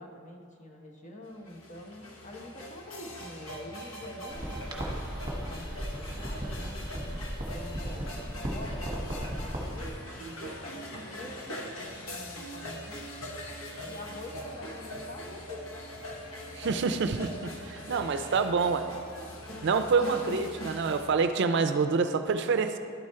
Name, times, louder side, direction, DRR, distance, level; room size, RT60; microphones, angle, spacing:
voice 1, 0.0-7.1 7.5-13.0 13.9-15.6, left 1 dB, 35° left, 0 dB, 1.0 m, -46 dB
sound 1, 1.2-21.1, equal, 90° left, 1.0 m, -42 dB
sound 2, 4.3-9.9, equal, 20° right, 1.3 m, -36 dB
voice 2, 16.5-18.9 19.6-22.8, right 4 dB, 60° right, 9 dB, 0.4 m, -27 dB
11.5 x 4.8 x 4.3 m, 2.2 s
head